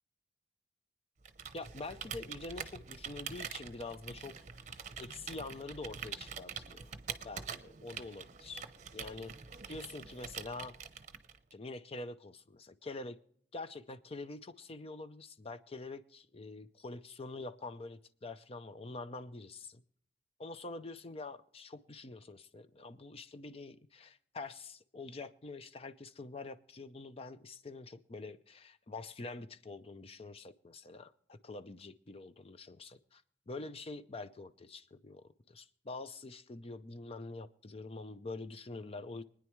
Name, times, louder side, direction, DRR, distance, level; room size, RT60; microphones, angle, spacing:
Computer keyboard, 1.2-11.5, right 7 dB, 45° right, 0.7 m, -45 dB
voice 1, 1.5-4.4 4.7-6.9 7.2-8.7 8.9-9.3 9.7-10.8 11.5-13.2 13.5-19.8 20.4-39.2, left 3 dB, 35° left, 12 dB, 0.6 m, -46 dB
25.0 x 9.8 x 3.1 m, 0.62 s
head